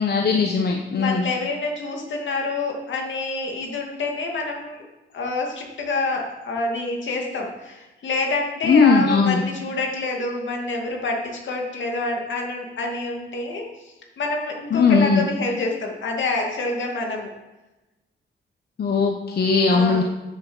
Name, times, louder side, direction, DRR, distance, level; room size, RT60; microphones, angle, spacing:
voice 1, 0.0-1.3 8.6-9.4 14.7-15.2 18.8-20.0, left 4 dB, 55° left, 3 dB, 1.0 m, -19 dB
voice 2, 1.0-4.8 5.1-17.3 19.7-20.0, left 3 dB, 70° left, 1 dB, 2.5 m, -27 dB
9.9 x 7.2 x 7.1 m, 1.1 s
wide cardioid pair, 125°, 20 cm